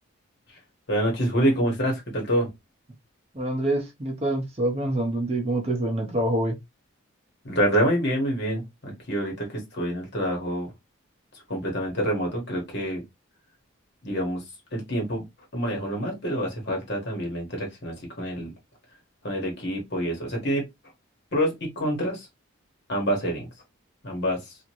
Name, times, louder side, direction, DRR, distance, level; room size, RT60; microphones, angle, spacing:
voice 1, 0.9-2.5 7.4-10.7 11.5-13.0 14.0-14.4 14.7-15.3 15.5-18.5 19.2-20.6 21.3-22.3 22.9-23.5 24.0-24.6, equal, 50° left, 1.3 m, -27 dB
voice 2, 3.3-6.6, right 1 dB, 30° right, 0.6 m, -26 dB
2.9 x 2.5 x 2.9 m
head